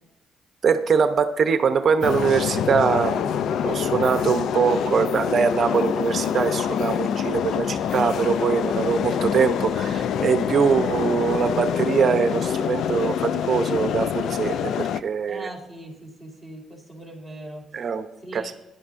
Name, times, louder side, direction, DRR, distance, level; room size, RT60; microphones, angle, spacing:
voice 1, 0.6-3.4 3.6-15.5 17.7-18.1 18.3-18.5, right 6 dB, 50° right, 9 dB, 0.8 m, -22 dB
sound 1, 2.0-15.0, left 8 dB, 75° left, 0.4 m, -26 dB
voice 2, 10.5-11.0 15.3-17.9 18.2-18.5, right 1 dB, 10° left, 0 dB, 3.8 m, -40 dB
14.5 x 10.5 x 2.6 m, 1.0 s
cardioid pair, 90°, 0 cm